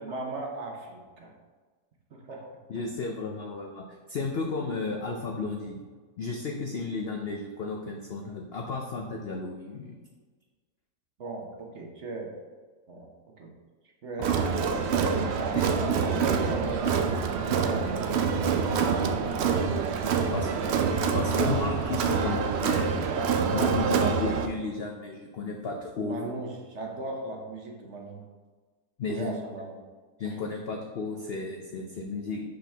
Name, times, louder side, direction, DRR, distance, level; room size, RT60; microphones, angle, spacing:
voice 1, 0.0-1.3 2.1-2.5 11.2-12.3 12.9-13.1 13.4-13.5 14.0-17.9 18.8-19.5 20.0-21.0 26.0-28.2 29.1-29.7 30.2-30.4, right 3 dB, 50° right, 0 dB, 1.0 m, -38 dB
voice 2, 2.7-5.8 6.2-9.9 15.5-15.7 20.3-20.5 21.1-23.1 23.5-26.3 29.0-29.3 30.2-32.4, left 3 dB, 70° left, 1 dB, 0.6 m, -33 dB
Crowd, 14.2-24.5, right 6 dB, 85° right, 0.5 m, -26 dB
5.8 x 5.5 x 3.4 m, 1.4 s
omnidirectional pair, 1.7 m